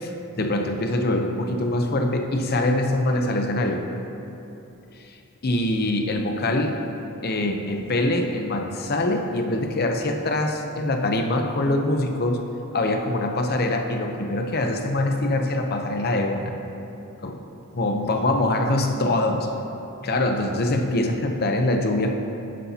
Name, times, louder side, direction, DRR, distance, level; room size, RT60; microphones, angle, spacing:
voice 1, 0.0-3.8 5.4-6.8 7.2-12.4 12.7-16.5 17.2-17.4 17.7-19.5 20.0-22.1, left 1 dB, 45° left, 4 dB, 0.7 m, -24 dB
11.5 x 9.7 x 2.8 m, 2.9 s
head